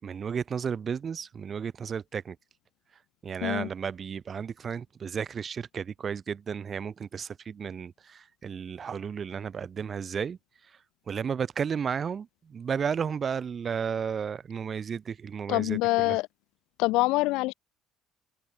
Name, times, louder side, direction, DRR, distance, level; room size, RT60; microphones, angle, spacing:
voice 1, 0.0-2.4 3.2-10.4 11.1-16.2, right 7 dB, 40° right, 5.9 m, -33 dB
voice 2, 15.5-16.3 16.8-17.5, left 21 dB, 90° left, 1.2 m, -25 dB
cardioid pair, 100°, 0 cm